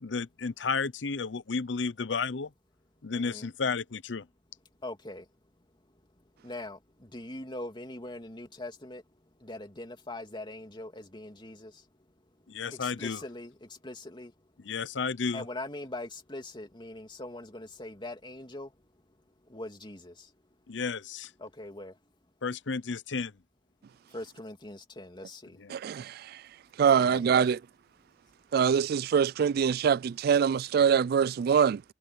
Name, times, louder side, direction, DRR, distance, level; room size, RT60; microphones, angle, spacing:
voice 1, 0.0-2.5 3.0-4.3 12.5-13.2 14.6-15.5 20.7-21.3 22.4-23.3 25.6-25.8, left 5 dB, 85° left, 0.8 m, -32 dB
voice 2, 3.1-3.5 4.8-5.2 6.4-9.0 9.4-11.7 12.7-14.3 15.3-18.7 19.5-20.1 21.4-21.9 24.1-25.6 26.9-27.3, left 2 dB, 25° left, 2.9 m, -42 dB
voice 3, 25.7-26.4 26.8-27.6 28.5-31.8, right 7 dB, 55° right, 0.3 m, -24 dB
head